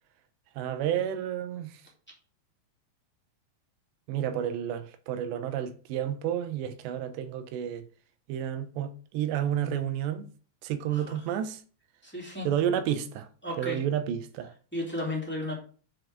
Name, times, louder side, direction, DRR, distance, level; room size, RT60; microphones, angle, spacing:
voice 1, 0.6-1.7 4.1-7.8 8.3-10.3 10.6-11.6 12.5-13.3 13.6-14.5, right 10 dB, 85° right, 2.9 m, -30 dB
voice 2, 12.0-12.5 13.4-13.8 14.7-15.6, left 1 dB, 5° left, 1.8 m, -34 dB
7.7 x 4.7 x 6.5 m
omnidirectional pair, 5.1 m